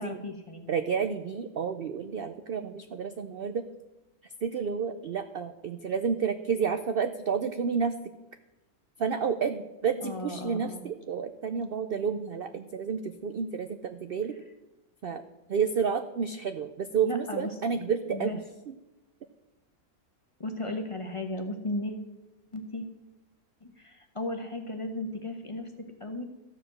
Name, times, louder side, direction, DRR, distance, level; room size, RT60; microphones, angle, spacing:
voice 1, 0.0-0.7 10.0-10.8 17.0-17.5 18.1-18.4 20.4-22.0 22.5-22.9 23.6-26.2, left 2 dB, 25° left, 4 dB, 1.0 m, -35 dB
voice 2, 0.7-3.7 4.4-7.9 9.0-14.3 15.0-15.2 15.5-18.4 18.7-18.8, right 6 dB, 60° right, 9 dB, 0.6 m, -30 dB
14.0 x 5.0 x 7.6 m, 1.0 s
omnidirectional pair, 1.6 m